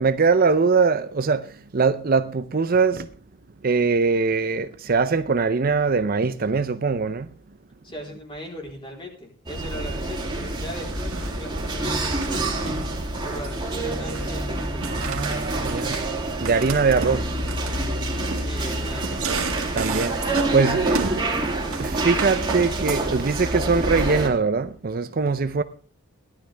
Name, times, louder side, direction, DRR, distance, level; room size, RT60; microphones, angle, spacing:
voice 1, 0.0-3.1 3.6-7.3 14.9-16.0 16.4-17.3 19.7-20.2 20.5-21.4 21.8-25.6, right 4 dB, 45° right, 0.6 m, -22 dB
voice 2, 7.8-12.8 13.2-15.1 18.4-19.3, equal, 25° left, 3.8 m, -39 dB
sound 1, 9.5-24.3, right 2 dB, 20° right, 2.7 m, -27 dB
sound 2, 10.4-10.7 10.9-12.4 12.7-13.6 13.9-14.4 14.8-16.1 16.4-20.7 20.9-21.3 21.7-22.9 23.3-23.6, right 4 dB, 85° right, 1.9 m, -34 dB
17.0 x 11.5 x 3.4 m
head